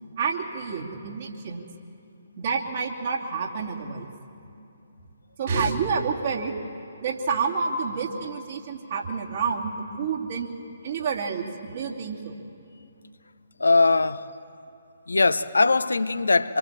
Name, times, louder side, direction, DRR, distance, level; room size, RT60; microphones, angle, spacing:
voice 1, 0.2-1.7 2.4-4.1 5.4-6.5 7.0-10.5 10.8-12.4, right 5 dB, 45° right, 2.9 m, -28 dB
voice 2, 13.6-14.2 15.1-16.6, left 3 dB, 70° left, 0.8 m, -20 dB
26.0 x 22.5 x 7.5 m
figure-of-eight pair, 135°, 0 cm